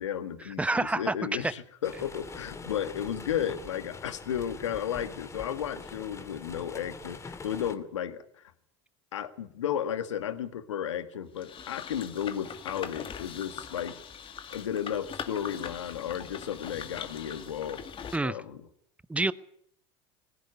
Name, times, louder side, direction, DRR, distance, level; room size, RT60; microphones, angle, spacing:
voice 1, 0.0-8.5 9.1-14.0 14.5-18.7, left 9 dB, 90° left, 10 dB, 1.9 m, -34 dB
voice 2, 0.6-1.1 1.4-1.5 18.1-18.4 19.1-19.3, right 2 dB, 10° right, 16 dB, 1.0 m, -27 dB
sound 1, 1.8-7.8, left 4 dB, 20° left, 2.3 m, -44 dB
sound 2, 11.4-18.2, left 7 dB, 35° left, 2.4 m, -41 dB
19.0 x 16.5 x 9.8 m, 0.70 s
hypercardioid pair, 90°, 15 cm